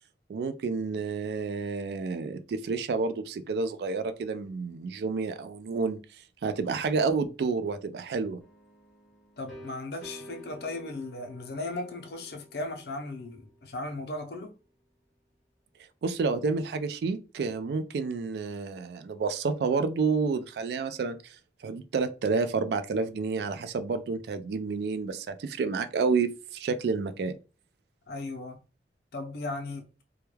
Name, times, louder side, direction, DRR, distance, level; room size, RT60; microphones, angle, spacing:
voice 1, 0.3-6.0 6.4-8.4 16.0-21.2 21.6-27.4, right 4 dB, 70° right, 0.3 m, -29 dB
sound 1, 8.4-14.1, equal, ahead, 0.6 m, -51 dB
voice 2, 9.4-14.6 28.1-28.6 29.1-29.8, left 2 dB, 65° left, 0.5 m, -36 dB
2.2 x 2.2 x 3.1 m
head